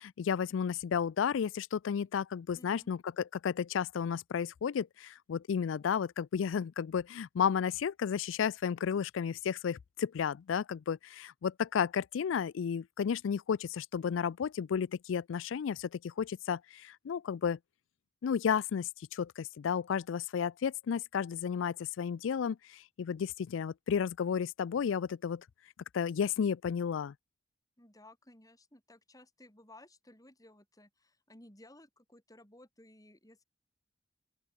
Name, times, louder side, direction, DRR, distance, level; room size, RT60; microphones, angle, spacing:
voice 1, 0.0-17.6 18.2-25.4 25.9-27.1, left 7 dB, 80° left, 0.4 m, -33 dB
voice 2, 2.5-2.9 27.8-33.4, left 1 dB, 20° left, 7.0 m, -57 dB
open air
head